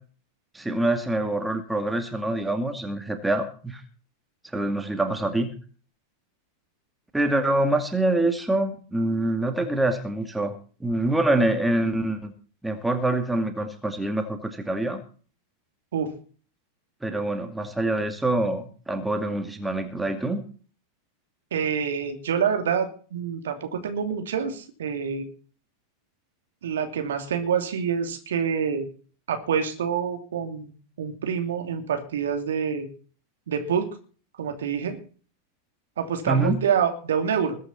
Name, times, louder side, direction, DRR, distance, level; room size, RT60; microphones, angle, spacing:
voice 1, 0.5-3.8 4.5-5.5 7.1-10.5 10.8-12.3 12.6-15.0 17.0-20.4 36.3-36.6, right 2 dB, 5° right, 6 dB, 2.3 m, -25 dB
voice 2, 21.5-25.3 26.6-28.9 29.3-30.7 31.0-32.9 33.5-33.9 34.4-35.0 36.0-37.6, right 7 dB, 60° right, 6 dB, 2.8 m, -26 dB
21.0 x 9.7 x 4.3 m, 0.40 s
figure-of-eight pair, 90°, 0 cm